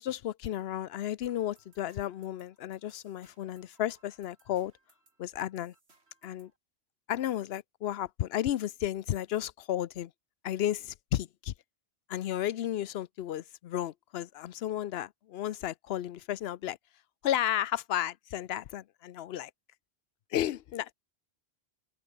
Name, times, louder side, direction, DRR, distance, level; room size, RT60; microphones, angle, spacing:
voice 1, 0.0-4.7 5.2-5.7 6.2-6.5 7.1-10.1 10.4-11.5 12.1-16.8 17.2-19.5 20.3-20.9, left 12 dB, 75° left, 0.8 m, -33 dB
sound 1, 1.2-6.6, right 3 dB, 85° right, 3.5 m, -67 dB
open air
omnidirectional pair, 1.1 m